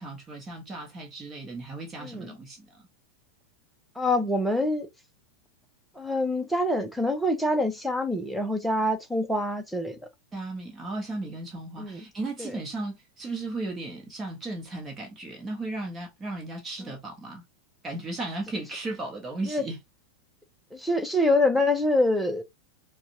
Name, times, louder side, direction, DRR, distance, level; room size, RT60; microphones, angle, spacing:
voice 1, 0.0-2.8 10.3-17.4 17.8-19.8, right 2 dB, 20° right, 1.3 m, -35 dB
voice 2, 4.0-4.9 6.0-10.0 11.8-12.0 12.4-12.5 19.5-19.6 20.7-22.4, left 1 dB, ahead, 0.9 m, -25 dB
5.6 x 2.4 x 2.7 m
figure-of-eight pair, 90°, 0 cm